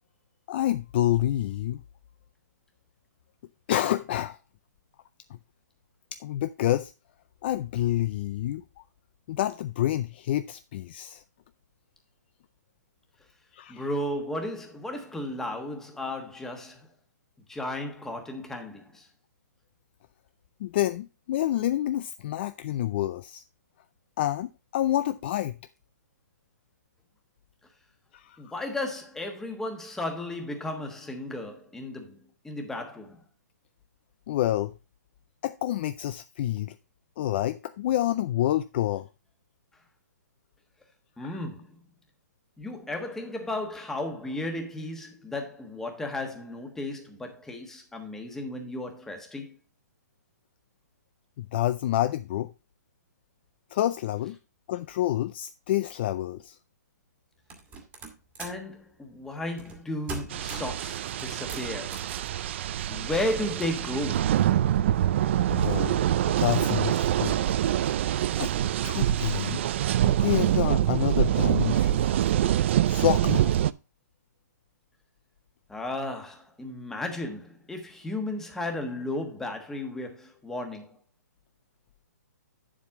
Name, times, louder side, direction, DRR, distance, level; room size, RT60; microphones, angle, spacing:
voice 1, 0.5-1.8 3.7-4.4 6.2-6.9 7.4-8.6 9.3-11.2 13.5-13.9 20.6-23.4 24.2-25.6 28.1-28.5 34.3-34.7 35.4-36.8 37.2-39.1 41.2-41.4 51.4-52.5 53.7-54.4 54.7-56.6 65.5-66.1 66.4-67.4 68.4-68.5 68.8-69.6 70.0-72.0 72.8-73.6, left 13 dB, 35° left, 0.4 m, -28 dB
voice 2, 13.7-16.9 17.5-19.1 28.4-33.2 41.2-41.7 42.6-49.5 58.4-62.1 62.9-64.4 75.7-81.0, left 1 dB, 5° left, 1.3 m, -34 dB
sound 1, 57.5-58.7 59.6-59.8 60.1-60.8 61.2-62.2, right 4 dB, 15° right, 1.6 m, -40 dB
sound 2, 60.3-73.7, right 11 dB, 40° right, 0.3 m, -25 dB
8.5 x 7.4 x 3.5 m
hypercardioid pair, 155°, 10 cm